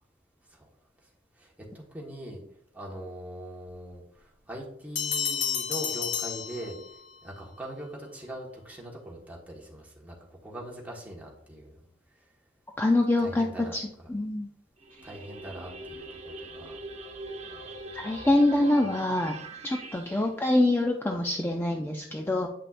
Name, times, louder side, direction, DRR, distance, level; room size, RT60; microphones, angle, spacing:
voice 1, 1.4-2.4 2.7-6.8 7.2-10.1 10.4-11.7 13.2-14.1 15.0-16.8, right 1 dB, 10° right, -3 dB, 1.5 m, -41 dB
Bell, 5.0-7.2, left 8 dB, 85° left, 1.4 m, -31 dB
voice 2, 12.8-13.8 14.1-14.5 17.9-19.4 19.6-22.5, left 1 dB, 15° left, 2 dB, 0.4 m, -25 dB
sound 1, 14.8-20.3, right 2 dB, 40° right, 0.7 m, -42 dB
8.4 x 5.5 x 2.5 m, 0.73 s
head